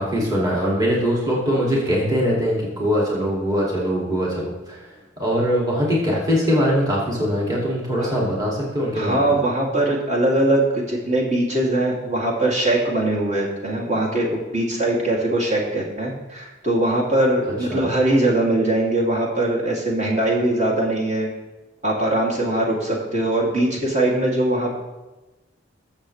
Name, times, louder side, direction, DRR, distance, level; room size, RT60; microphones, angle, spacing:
voice 1, 0.0-4.8 5.2-9.3 17.7-17.9, equal, 20° right, -4 dB, 2.6 m, -22 dB
voice 2, 8.9-21.3 21.8-24.7, right 1 dB, 40° right, -4 dB, 2.7 m, -21 dB
21.0 x 7.3 x 3.3 m, 1.1 s
head